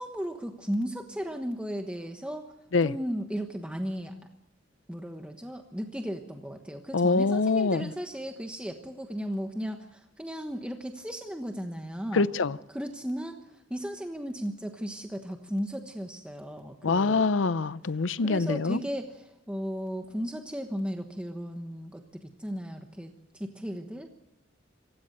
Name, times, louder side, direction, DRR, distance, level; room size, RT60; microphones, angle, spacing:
voice 1, 0.0-2.5 2.8-4.1 4.9-12.3 12.7-17.3 17.8-24.1, equal, 5° right, 1.2 m, -35 dB
voice 2, 6.9-7.9 12.1-12.6 16.8-18.8, left 4 dB, 85° left, 0.6 m, -25 dB
26.5 x 16.0 x 6.7 m
head